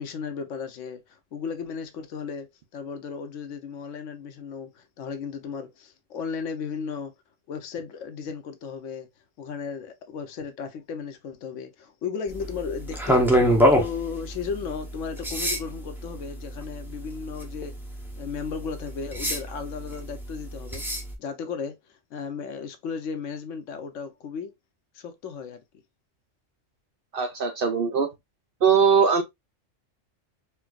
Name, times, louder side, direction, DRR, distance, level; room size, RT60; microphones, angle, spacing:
voice 1, 0.0-7.1 7.5-9.1 9.4-17.7 18.2-20.8 21.2-21.8 22.1-24.5 24.9-25.6, left 6 dB, 75° left, 1.0 m, -35 dB
sound 1, 12.3-21.1, equal, 5° right, 0.4 m, -27 dB
voice 2, 27.1-28.1 28.6-29.2, right 6 dB, 55° right, 0.6 m, -20 dB
4.4 x 2.3 x 2.3 m
omnidirectional pair, 1.3 m